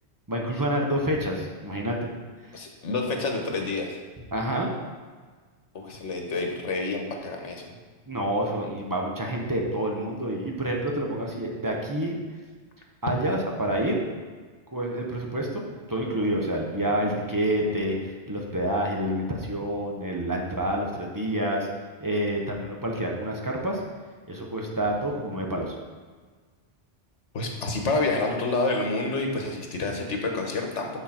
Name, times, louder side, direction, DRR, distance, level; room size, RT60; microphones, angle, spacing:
voice 1, 0.3-2.0 4.3-4.7 8.1-12.2 13.0-14.0 14.7-15.6 15.9-21.7 22.0-23.8 24.3-25.7, right 1 dB, 20° right, -1 dB, 0.9 m, -28 dB
voice 2, 2.5-4.0 5.7-7.7 27.3-30.9, left 3 dB, 75° left, 2 dB, 1.4 m, -28 dB
7.0 x 6.3 x 4.4 m, 1.5 s
omnidirectional pair, 1.2 m